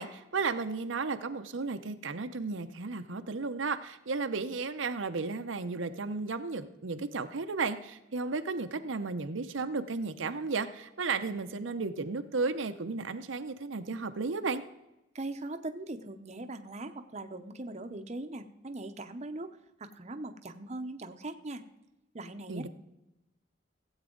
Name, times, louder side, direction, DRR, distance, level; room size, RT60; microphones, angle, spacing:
voice 1, 0.0-14.6 22.5-22.7, right 4 dB, 85° right, 8 dB, 0.7 m, -34 dB
voice 2, 15.1-21.6 22.1-22.7, right 2 dB, 35° right, 7 dB, 0.7 m, -40 dB
16.0 x 8.1 x 3.8 m, 0.93 s
head